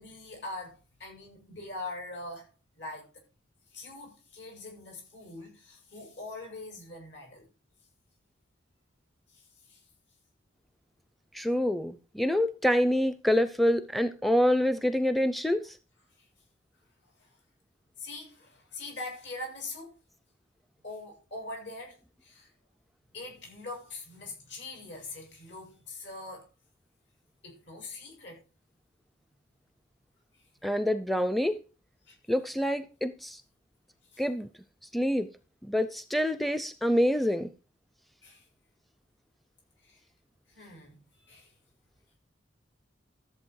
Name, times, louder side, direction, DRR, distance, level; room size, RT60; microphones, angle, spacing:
voice 1, 0.0-2.5 2.8-3.2 3.7-7.5 9.3-9.4 9.7-9.8 18.0-19.9 20.8-22.0 22.2-22.5 23.1-26.5 27.4-28.4 32.1-32.2 34.1-34.2 38.2-38.4 39.8-40.0 40.5-41.5, left 2 dB, 70° left, 7.4 m, -43 dB
voice 2, 11.3-15.8 30.6-31.6 32.3-33.4 34.2-34.5 34.9-35.3 35.6-37.5, equal, ahead, 0.5 m, -26 dB
13.5 x 7.8 x 4.7 m
head